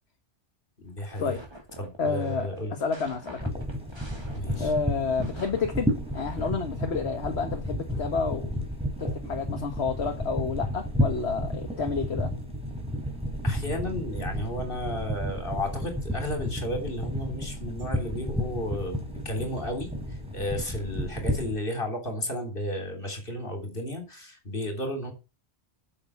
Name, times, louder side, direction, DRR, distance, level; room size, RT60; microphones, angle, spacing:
voice 1, 0.8-1.4 1.8-2.8 4.3-4.7 13.4-25.1, left 1 dB, 55° left, 3.8 m, -33 dB
sound 1, 0.8-6.7, right 1 dB, 25° right, 2.9 m, -47 dB
voice 2, 2.0-2.5 2.8-3.5 4.6-8.5 9.0-12.3, left 5 dB, 70° left, 1.7 m, -30 dB
sound 2, 3.4-21.5, equal, 5° right, 3.9 m, -32 dB
8.8 x 7.6 x 8.3 m
omnidirectional pair, 1.1 m